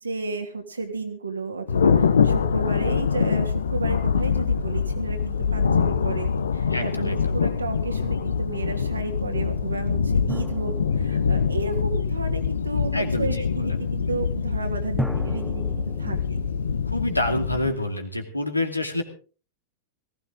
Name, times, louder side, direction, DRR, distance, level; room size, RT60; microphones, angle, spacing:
voice 1, 0.0-16.4, right 3 dB, 75° right, 5 dB, 2.6 m, -33 dB
Thunder, 1.7-17.7, left 6 dB, 70° left, 1.1 m, -24 dB
voice 2, 6.7-7.3 12.9-13.5 16.9-19.0, left 1 dB, 85° left, 5 dB, 2.4 m, -27 dB
sound 1, 10.3-12.6 15.0-17.9, equal, ahead, 1.2 m, -37 dB
18.5 x 16.0 x 3.7 m, 0.37 s
figure-of-eight pair, 90°, 0 cm